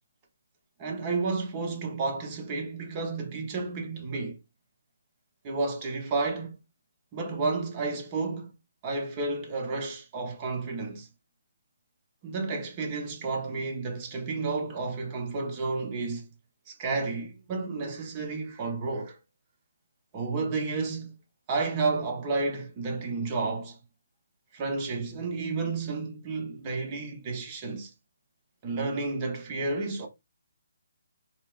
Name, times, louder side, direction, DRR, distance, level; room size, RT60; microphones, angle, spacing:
voice 1, 0.8-4.4 5.4-6.6 7.1-8.5 8.8-11.1 12.2-16.3 16.7-19.2 20.1-21.2 21.5-23.8 24.5-27.9 28.6-30.1, right 3 dB, 25° right, 0.8 m, -31 dB
4.1 x 2.0 x 2.4 m
hypercardioid pair, 155°, 0 cm